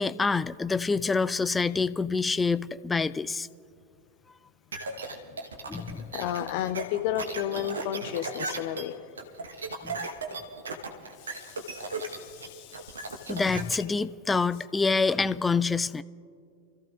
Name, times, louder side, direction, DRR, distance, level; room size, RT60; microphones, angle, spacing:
voice 1, 0.0-3.5 5.7-6.1 9.8-10.1 13.3-16.0, left 4 dB, 10° left, 16 dB, 0.3 m, -27 dB
sound 1, 4.7-13.8, right 3 dB, 70° right, 1.2 m, -36 dB
voice 2, 5.3-9.0 11.2-13.4, left 11 dB, 45° left, 10 dB, 0.7 m, -34 dB
28.0 x 14.5 x 2.5 m, 2.3 s
figure-of-eight pair, 90°, 0 cm